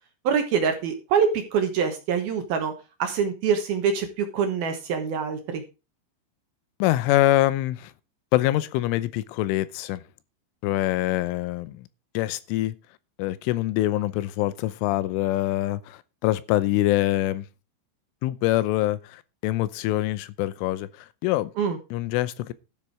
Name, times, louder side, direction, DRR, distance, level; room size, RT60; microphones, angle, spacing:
voice 1, 0.2-2.7 3.0-5.6 21.6-21.8, right 6 dB, 65° right, 2.6 m, -25 dB
voice 2, 6.8-7.9 8.3-10.0 10.6-11.8 12.1-12.7 13.2-17.5 18.2-21.5 21.9-22.5, left 15 dB, 85° left, 3.2 m, -24 dB
12.5 x 7.7 x 4.8 m
omnidirectional pair, 5.6 m